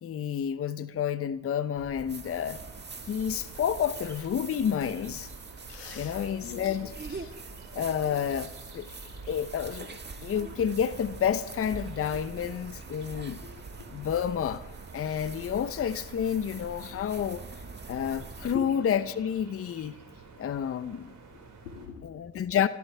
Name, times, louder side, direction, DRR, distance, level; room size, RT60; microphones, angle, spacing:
voice 1, 0.0-2.6 3.1-5.3 5.9-6.9 7.7-8.9 9.3-13.4 13.9-14.7 14.9-17.4 17.9-20.0 20.4-21.1 22.0-22.7, left 8 dB, 30° left, 0.7 m, -30 dB
sound 1, 1.8-18.6, right 4 dB, 20° right, 1.7 m, -44 dB
sound 2, 2.2-21.9, right 3 dB, 40° right, 5.2 m, -51 dB
voice 2, 5.7-7.4 12.1-12.2 13.4-14.1 17.9-18.0 18.5-18.7 21.3-22.1 22.3-22.4, left 8 dB, 85° left, 1.9 m, -44 dB
29.0 x 13.0 x 3.4 m
hypercardioid pair, 60°, 48 cm